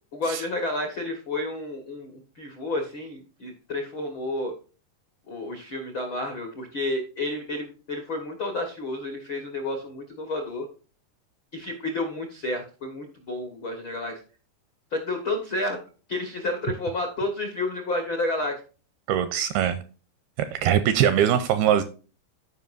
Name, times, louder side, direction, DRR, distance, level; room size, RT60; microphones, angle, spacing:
voice 1, 0.1-4.5 5.3-10.7 11.5-14.2 14.9-15.8 16.1-18.6, left 2 dB, 80° left, 4 dB, 1.0 m, -30 dB
voice 2, 19.1-19.8 20.4-21.8, right 10 dB, 85° right, 11 dB, 2.3 m, -22 dB
14.5 x 5.5 x 2.6 m, 0.36 s
omnidirectional pair, 4.9 m